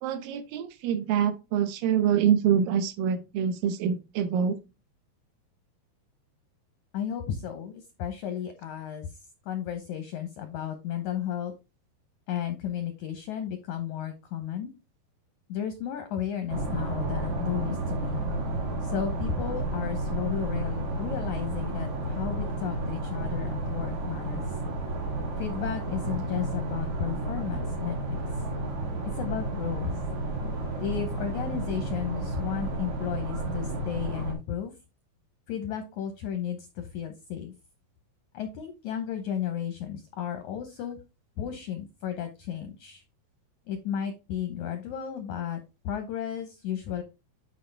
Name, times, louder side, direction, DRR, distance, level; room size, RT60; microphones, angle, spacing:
voice 1, 0.0-4.6, right 8 dB, 70° right, 10 dB, 2.5 m, -25 dB
voice 2, 6.9-11.5 12.3-14.7 15.5-18.2 18.8-24.4 25.4-28.2 29.1-30.0 30.8-34.7 35.5-37.5 38.3-41.0 41.4-43.0 43.7-47.0, left 9 dB, 75° left, 7 dB, 1.8 m, -33 dB
sound 1, 16.5-34.3, right 2 dB, 50° right, 3.2 m, -32 dB
10.0 x 4.7 x 3.4 m, 0.27 s
omnidirectional pair, 4.6 m